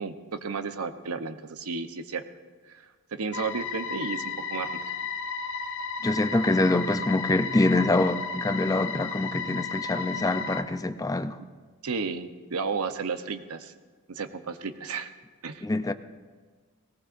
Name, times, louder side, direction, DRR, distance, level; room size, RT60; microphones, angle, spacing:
voice 1, 0.0-2.2 2.7-2.8 3.1-4.2 4.5-4.7 11.4-11.5 11.8-13.7 14.1-15.1 15.4-15.7, right 4 dB, 85° right, 0.8 m, -33 dB
sound 1, 3.3-10.6, left 5 dB, 60° left, 0.8 m, -34 dB
voice 2, 6.0-11.4 15.6-15.9, left 2 dB, 15° left, 0.5 m, -25 dB
19.0 x 18.5 x 2.6 m
head